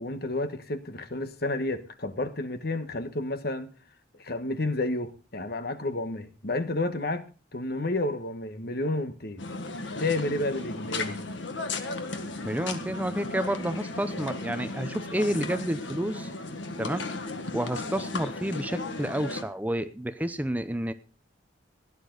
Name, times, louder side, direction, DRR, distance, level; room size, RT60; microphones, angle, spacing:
voice 1, 0.0-3.7 4.2-7.3 7.5-9.4 10.0-11.2, left 2 dB, 55° left, 1.3 m, -30 dB
sound 1, 9.4-19.4, left 3 dB, 75° left, 1.6 m, -35 dB
voice 2, 12.4-16.3 16.8-17.1 17.5-20.9, right 1 dB, 10° right, 0.6 m, -30 dB
16.5 x 11.0 x 3.9 m
head